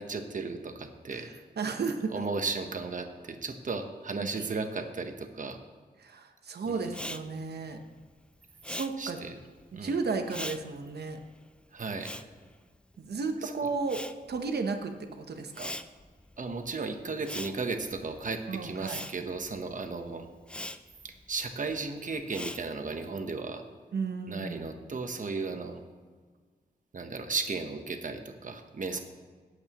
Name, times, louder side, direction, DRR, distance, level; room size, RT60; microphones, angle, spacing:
voice 1, 0.0-1.3 2.1-5.6 6.7-7.0 9.0-9.4 9.7-10.0 11.7-12.1 13.4-13.5 16.4-20.3 21.0-23.6 24.3-25.8 26.9-29.0, right 4 dB, 50° right, 6 dB, 1.1 m, -35 dB
voice 2, 1.6-2.1 6.0-7.8 8.7-9.2 9.7-11.2 13.0-14.0 14.3-15.7 18.5-19.0 23.9-24.7 28.9-29.0, right 4 dB, 80° right, 5 dB, 1.0 m, -33 dB
Respiratory sounds, 6.9-13.3 13.6-23.1, left 1 dB, 5° left, 0.4 m, -43 dB
18.0 x 8.0 x 3.1 m, 1.5 s
wide cardioid pair, 125°, 17 cm